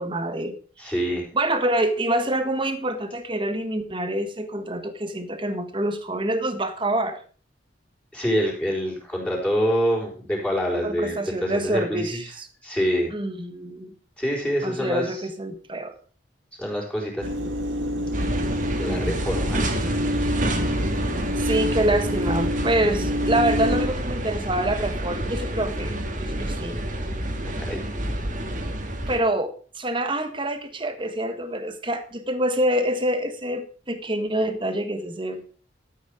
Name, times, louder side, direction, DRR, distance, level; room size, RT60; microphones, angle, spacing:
voice 1, 0.0-0.9 1.3-7.2 10.8-12.5 13.1-13.9 14.6-15.9 18.9-19.2 21.4-26.8 29.1-35.4, right 1 dB, 25° right, 9 dB, 1.4 m, -26 dB
voice 2, 0.8-1.3 8.1-12.3 12.6-13.1 14.2-15.2 16.6-17.3 18.8-19.6 20.1-20.3 27.4-27.8, equal, 5° left, -3 dB, 4.4 m, -26 dB
sound 1, 17.2-23.9, equal, 80° right, 1.7 m, -28 dB
sound 2, 18.1-29.2, right 1 dB, 40° right, 1.9 m, -28 dB
13.0 x 8.4 x 5.0 m, 0.40 s
head